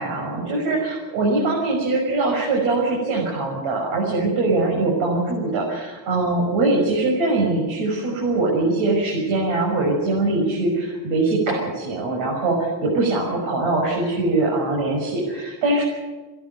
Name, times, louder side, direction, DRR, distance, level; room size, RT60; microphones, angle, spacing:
voice 1, 0.0-15.8, right 2 dB, 85° right, -1 dB, 6.6 m, -22 dB
28.5 x 11.5 x 9.4 m, 1.3 s
cardioid pair, 180°, 47 cm